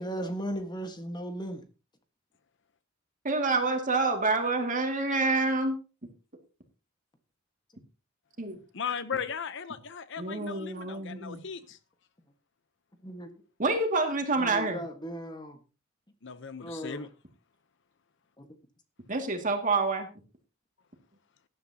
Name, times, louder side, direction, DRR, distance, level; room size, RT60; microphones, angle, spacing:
voice 1, 0.0-1.6 13.0-13.3 14.4-15.6 16.6-17.1 18.4-18.5, equal, 20° left, 1.6 m, -36 dB
voice 2, 3.2-5.8 8.4-8.6 10.2-11.4 13.6-14.8 19.1-20.1, right 3 dB, 40° right, 2.3 m, -27 dB
voice 3, 8.7-11.8 16.2-17.1, left 6 dB, 60° left, 0.9 m, -37 dB
17.0 x 11.0 x 2.9 m
head